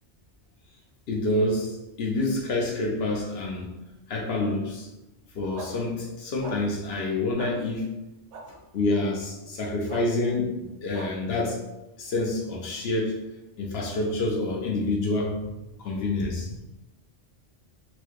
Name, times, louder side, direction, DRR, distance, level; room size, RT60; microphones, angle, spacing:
voice 1, 1.1-3.7 4.1-4.9 5.3-7.9 8.7-11.6 12.0-13.1 13.6-15.5 15.8-16.5, left 2 dB, 65° left, 0 dB, 0.9 m, -27 dB
sound 1, 5.5-5.7 6.4-6.6 7.4-7.5 8.3-8.4 9.9-10.0 10.9-11.1, right 4 dB, 80° right, 0.9 m, -38 dB
4.3 x 2.2 x 3.0 m, 0.98 s
omnidirectional pair, 1.2 m